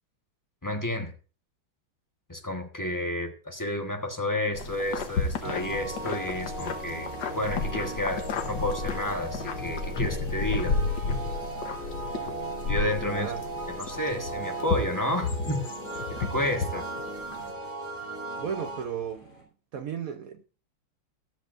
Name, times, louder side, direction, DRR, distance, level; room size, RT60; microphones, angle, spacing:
voice 1, 0.6-1.1 2.3-7.1 7.3-10.8 12.7-13.3 13.7-15.7 16.1-16.9, left 1 dB, 10° left, 1.1 m, -31 dB
sound 1, 4.5-17.5, left 4 dB, 60° left, 1.7 m, -32 dB
sound 2, 5.4-18.9, right 2 dB, 30° right, 3.1 m, -37 dB
sound 3, 6.9-19.4, right 1 dB, 35° left, 5.9 m, -52 dB
voice 2, 12.9-13.4 18.4-19.4 19.7-20.4, right 7 dB, 60° right, 0.9 m, -34 dB
15.0 x 13.0 x 2.6 m
omnidirectional pair, 2.3 m